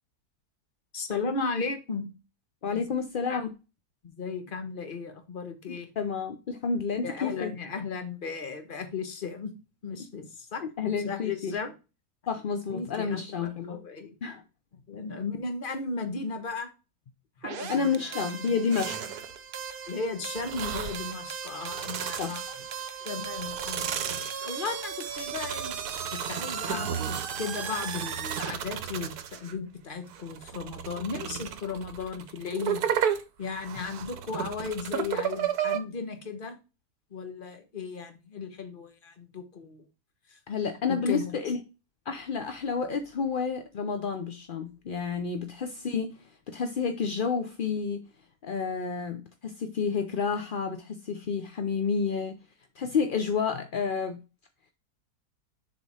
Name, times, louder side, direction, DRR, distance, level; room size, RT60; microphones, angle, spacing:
voice 1, 0.9-2.1 2.6-2.9 3.3-3.4 4.0-5.9 7.0-9.5 9.8-11.7 12.7-14.1 14.9-16.7 17.4-18.5 19.9-22.4 23.0-24.1 24.4-25.8 26.1-32.8 33.4-36.6 37.1-39.8 40.3-40.4 40.9-41.3, left 4 dB, 35° left, 7 dB, 1.3 m, -35 dB
voice 2, 2.6-3.5 5.7-7.5 10.6-11.6 12.3-13.8 14.2-14.4 17.7-19.0 22.2-22.4 40.5-41.6 42.1-46.2 46.5-48.0 48.4-52.4 52.8-54.2, left 5 dB, 55° left, 7 dB, 0.6 m, -30 dB
sound 1, 17.4-28.5, right 7 dB, 55° right, 0.6 m, -37 dB
sound 2, 18.7-19.4 20.4-21.1 21.6-22.8 23.3-29.5 30.1-35.8, right 9 dB, 75° right, 1.3 m, -34 dB
7.0 x 4.3 x 4.8 m, 0.29 s
omnidirectional pair, 1.7 m